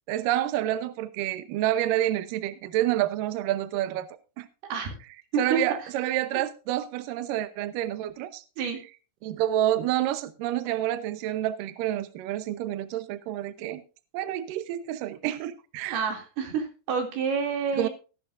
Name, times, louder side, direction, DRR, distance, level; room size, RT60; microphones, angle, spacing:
voice 1, 0.1-4.1 4.4-4.5 5.4-8.4 9.2-13.8 14.1-16.0 17.8-17.9, right 13 dB, 90° right, 12 dB, 1.9 m, -28 dB
voice 2, 4.6-4.9 5.3-5.6 8.6-8.8 15.9-17.9, right 5 dB, 65° right, 4 dB, 4.4 m, -28 dB
17.0 x 11.0 x 2.5 m, 0.33 s
omnidirectional pair, 5.2 m